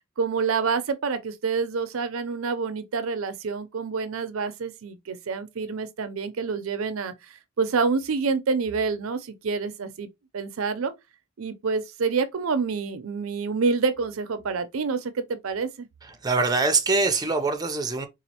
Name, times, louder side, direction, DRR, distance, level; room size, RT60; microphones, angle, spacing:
voice 1, 0.2-10.1 10.3-10.9 11.4-15.9, right 5 dB, 85° right, 0.5 m, -27 dB
voice 2, 16.1-18.1, right 3 dB, 20° right, 0.5 m, -23 dB
4.1 x 2.4 x 2.8 m
head